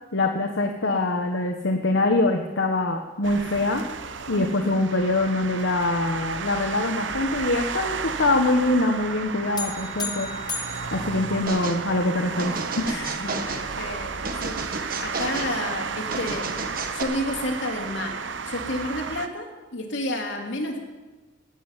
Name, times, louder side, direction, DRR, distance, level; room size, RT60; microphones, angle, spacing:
voice 1, 0.1-3.8 4.3-10.3 10.9-12.9, left 2 dB, 85° left, 3 dB, 1.1 m, -24 dB
sound 1, 3.2-19.3, right 5 dB, 75° right, 0.8 m, -33 dB
voice 2, 4.3-4.7 12.9-16.5 16.9-18.2 18.4-20.8, left 1 dB, 70° left, 0 dB, 3.0 m, -31 dB
sound 2, 9.6-12.0, left 4 dB, 25° left, 1.2 m, -35 dB
sound 3, 11.5-11.8 12.4-13.7 14.2-15.5 16.1-17.0, right 3 dB, 50° right, 1.4 m, -32 dB
17.5 x 7.6 x 9.0 m, 1.2 s
head